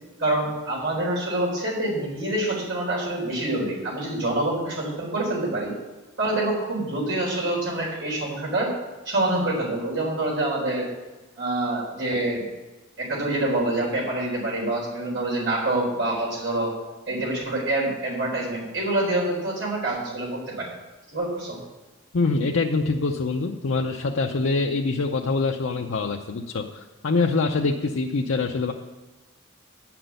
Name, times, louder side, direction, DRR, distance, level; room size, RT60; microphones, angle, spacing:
voice 1, 0.2-5.7 6.2-8.7 9.1-10.9 11.4-12.5 13.0-16.7 17.1-20.7 21.1-21.6, right 1 dB, 70° right, -3 dB, 3.9 m, -26 dB
voice 2, 22.1-28.7, left 3 dB, 80° left, 1 dB, 0.6 m, -24 dB
9.5 x 6.0 x 7.9 m, 1.2 s
head